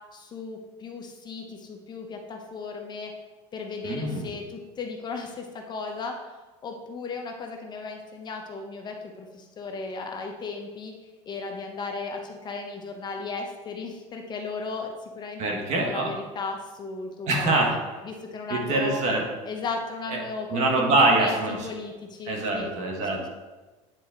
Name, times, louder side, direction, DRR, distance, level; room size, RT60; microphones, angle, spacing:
voice 1, 0.1-3.1 3.5-6.2 6.6-10.9 11.3-19.0 19.4-22.7, left 4 dB, 30° left, 3 dB, 0.8 m, -36 dB
voice 2, 3.8-4.3 15.4-16.1 17.3-17.7 18.5-19.2 20.1-20.2 20.5-21.5 22.3-23.3, right 2 dB, 50° right, 1 dB, 1.5 m, -24 dB
9.1 x 4.2 x 3.8 m, 1.2 s
supercardioid pair, 130°, 15 cm